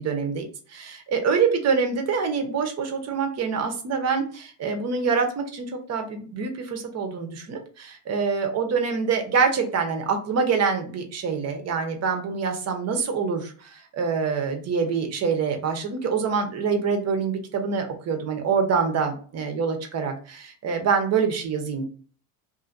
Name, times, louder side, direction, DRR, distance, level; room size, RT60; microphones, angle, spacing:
voice 1, 0.0-21.8, right 5 dB, 35° right, 5 dB, 0.8 m, -25 dB
2.7 x 2.6 x 2.5 m, 0.41 s
supercardioid pair, 115°, 47 cm